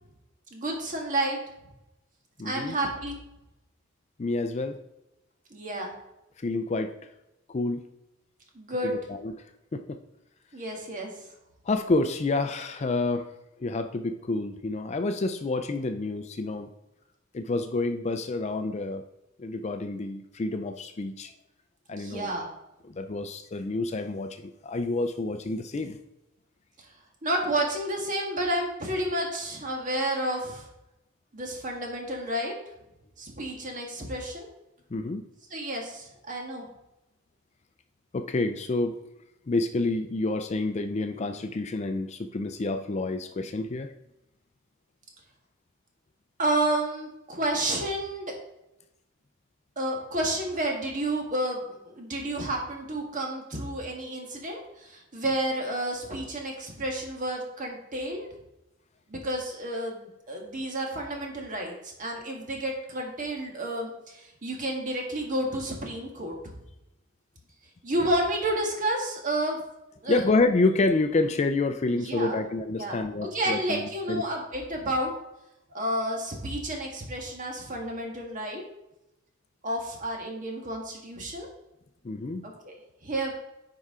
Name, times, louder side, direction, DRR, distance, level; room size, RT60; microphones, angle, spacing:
voice 1, 0.5-1.4 2.4-3.2 5.5-5.9 8.5-9.0 10.5-11.1 21.9-22.5 27.2-30.7 31.3-32.6 33.2-34.5 35.5-36.7 46.4-48.3 49.7-58.3 59.1-66.3 67.8-69.6 70.0-70.2 71.9-72.4 72.8-73.0 73.3-75.1 75.7-78.6 79.6-81.5 82.4-82.8 83.0-83.3, right 1 dB, 40° right, 1 dB, 1.6 m, -30 dB
voice 2, 2.4-2.8 4.2-4.8 6.4-6.9 7.5-7.8 8.8-9.3 9.7-10.0 11.7-13.3 13.6-16.7 17.3-19.0 19.4-21.3 21.9-22.3 22.9-26.0 34.9-35.2 38.1-39.0 39.5-43.9 70.1-74.2 82.0-82.5, left 3 dB, 35° left, 8 dB, 0.4 m, -28 dB
9.8 x 4.8 x 3.7 m, 0.91 s
head